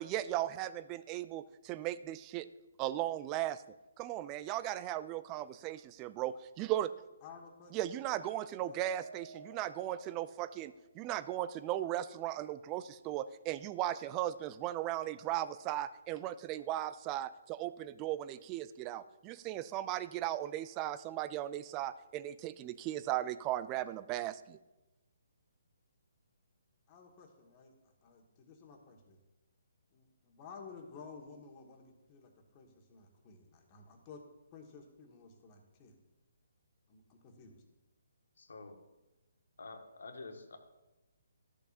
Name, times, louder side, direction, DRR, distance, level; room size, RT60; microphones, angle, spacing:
voice 1, 0.0-2.5 2.8-3.6 4.0-6.9 7.7-24.6, right 13 dB, 25° right, 14 dB, 0.3 m, -37 dB
voice 2, 7.2-7.7 8.6-8.9 26.9-27.7 28.0-29.2 29.9-36.0 36.9-37.6, left 5 dB, 30° left, 1 dB, 1.6 m, -54 dB
Mallet percussion, 8.9-11.2, right 3 dB, 70° right, 0.9 m, -55 dB
voice 3, 38.4-38.8 39.6-40.6, left 3 dB, 75° left, 4 dB, 1.4 m, -48 dB
13.0 x 6.9 x 2.6 m, 1.0 s
figure-of-eight pair, 145°, 0 cm